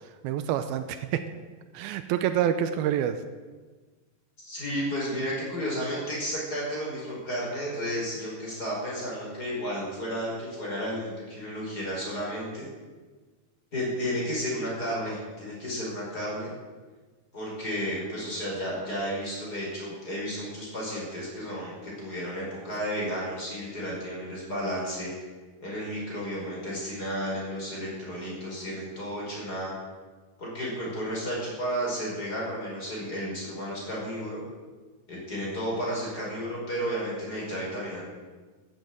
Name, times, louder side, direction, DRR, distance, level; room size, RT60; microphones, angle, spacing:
voice 1, 0.2-1.2 1.7-3.2, right 10 dB, 85° right, 10 dB, 2.5 m, -27 dB
voice 2, 4.4-12.7 13.7-16.5 17.3-25.1 25.6-29.7 30.4-34.4 35.1-38.0, equal, 25° left, -4 dB, 5.6 m, -32 dB
13.5 x 9.9 x 7.9 m, 1.4 s
omnidirectional pair, 4.4 m